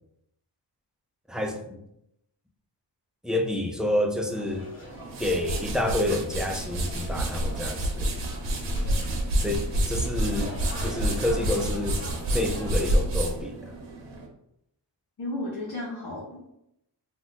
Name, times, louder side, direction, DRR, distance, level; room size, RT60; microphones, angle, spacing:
voice 1, 1.3-1.8 3.2-4.7 5.2-8.1 9.4-12.0 12.3-13.7, left 1 dB, ahead, 2 dB, 0.3 m, -29 dB
sound 1, 4.3-13.0, equal, 30° left, 1.0 m, -43 dB
sound 2, 4.9-14.3, right 1 dB, 70° right, 0.8 m, -29 dB
voice 2, 15.2-16.5, left 2 dB, 65° left, -6 dB, 0.9 m, -34 dB
2.5 x 2.3 x 3.8 m, 0.79 s
cardioid pair, 95°, 44 cm